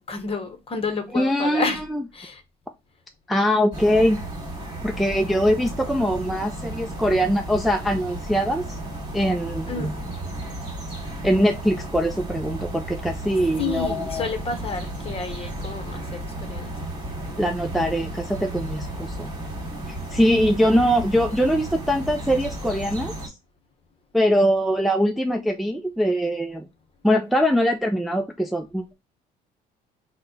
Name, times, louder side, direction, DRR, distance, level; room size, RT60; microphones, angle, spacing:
voice 1, 0.0-1.8 2.1-2.4 9.7-9.9 13.6-16.7, left 4 dB, 35° left, 0.9 m, -30 dB
voice 2, 1.1-2.0 3.3-4.3 4.8-8.8 9.1-9.9 11.2-14.3 17.4-19.3 19.9-23.1 24.1-26.7 27.0-28.9, equal, ahead, 0.3 m, -22 dB
sound 1, 3.7-23.3, right 1 dB, 25° right, 1.8 m, -33 dB
4.1 x 2.2 x 3.9 m
cardioid pair, 110°, 17 cm